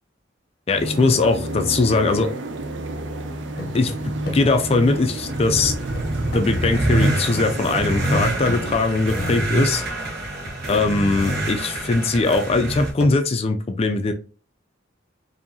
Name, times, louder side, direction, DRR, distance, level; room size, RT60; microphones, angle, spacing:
voice 1, 0.7-2.3 3.7-3.9 4.3-5.8 6.3-9.8 10.7-14.1, left 3 dB, 35° left, 7 dB, 0.4 m, -20 dB
sound 1, 0.7-8.8, right 1 dB, 75° right, 0.6 m, -31 dB
sound 2, 3.6-10.1 10.7-10.8 11.1-11.4 11.7-11.8 12.5-12.6 12.8-13.2, left 2 dB, 60° left, 0.7 m, -34 dB
sound 3, 5.1-12.9, right 1 dB, 55° right, 1.1 m, -26 dB
4.9 x 2.7 x 2.7 m, 0.37 s
head